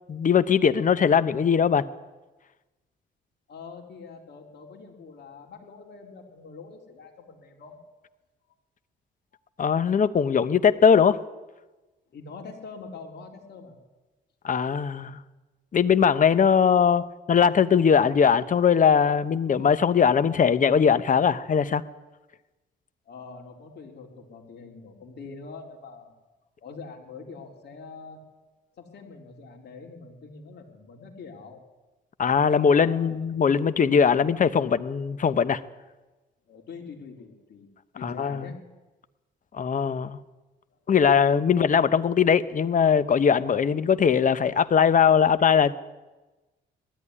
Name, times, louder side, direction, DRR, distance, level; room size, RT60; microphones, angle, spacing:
voice 1, 0.1-1.9 9.6-11.2 14.4-15.2 15.7-21.8 32.2-35.6 38.0-38.5 39.5-40.2 40.9-45.7, left 7 dB, 40° left, 13 dB, 1.0 m, -20 dB
voice 2, 3.5-7.8 12.1-13.8 23.1-26.1 26.6-28.2 28.8-31.6 32.5-33.1 36.5-37.7 38.0-38.6, left 4 dB, 55° left, 0 dB, 4.2 m, -44 dB
19.5 x 13.5 x 9.9 m, 1.1 s
cardioid pair, 90°, 20 cm